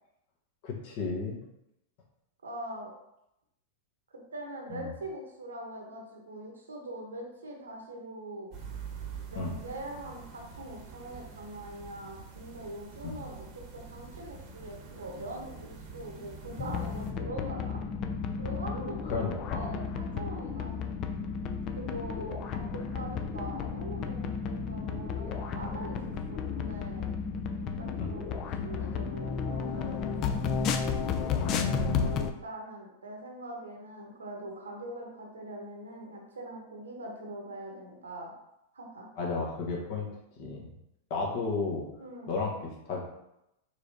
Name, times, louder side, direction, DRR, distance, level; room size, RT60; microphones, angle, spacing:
voice 1, 0.6-1.4 4.7-4.9 9.3-9.6 13.0-13.2 19.1-19.8 28.0-28.1 31.4-32.1 39.2-40.1 40.4-40.7 41.1-41.9 42.3-42.5 42.8-43.0, left 3 dB, 55° left, -2 dB, 1.2 m, -33 dB
voice 2, 2.4-2.9 4.3-8.5 9.3-17.8 18.4-20.8 21.7-27.1 27.6-30.0 30.2-30.5 31.5-38.3 38.7-39.1 42.0-42.3, right 1 dB, 85° right, 1 dB, 1.0 m, -42 dB
sound 1, 8.5-17.1, right 5 dB, 45° right, 0.9 m, -46 dB
sound 2, 16.6-32.3, left 6 dB, 40° left, 0.4 m, -33 dB
4.6 x 3.3 x 2.8 m, 0.86 s
hypercardioid pair, 100°, 0 cm